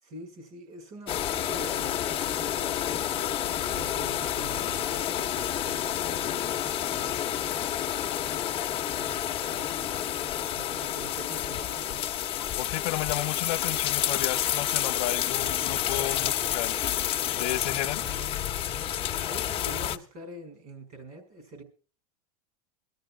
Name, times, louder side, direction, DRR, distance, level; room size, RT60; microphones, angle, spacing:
voice 1, 0.0-7.5 8.9-10.0 10.5-12.1 17.8-18.4 19.2-21.6, right 2 dB, 45° right, 5.6 m, -45 dB
sound 1, 1.1-20.0, left 11 dB, 25° left, 1.1 m, -29 dB
voice 2, 12.6-16.8 17.3-18.1, left 17 dB, 65° left, 0.7 m, -33 dB
24.0 x 13.0 x 2.4 m
supercardioid pair, 130°, 20 cm